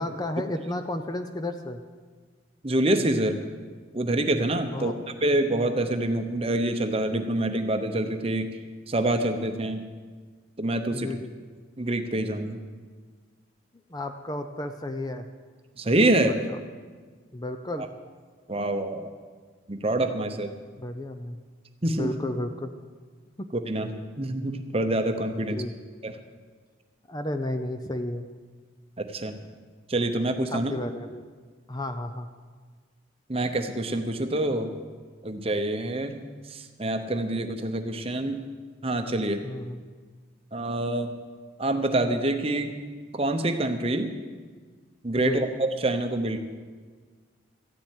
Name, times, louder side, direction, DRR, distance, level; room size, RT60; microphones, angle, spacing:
voice 1, 0.0-1.8 4.7-5.0 10.9-11.3 13.9-15.3 16.5-16.6 17.3-17.9 20.8-21.4 21.9-22.7 23.4-23.5 25.4-25.7 27.1-28.3 30.5-31.2 31.7-32.3 39.4-39.8 45.2-45.4, left 1 dB, 20° left, 7 dB, 0.6 m, -32 dB
voice 2, 2.6-3.4 3.9-4.9 5.2-8.5 8.9-9.8 10.6-11.1 11.8-12.6 15.8-16.3 17.8-17.9 18.5-19.1 19.7-20.5 21.8-22.1 23.5-25.6 26.0-26.1 29.0-29.4 29.9-30.7 33.3-34.7 35.2-38.4 38.8-39.4 40.5-41.1 41.6-42.8 43.1-44.1 45.0-46.4, right 1 dB, 30° right, 7 dB, 0.8 m, -26 dB
14.5 x 7.5 x 9.2 m, 1.5 s
head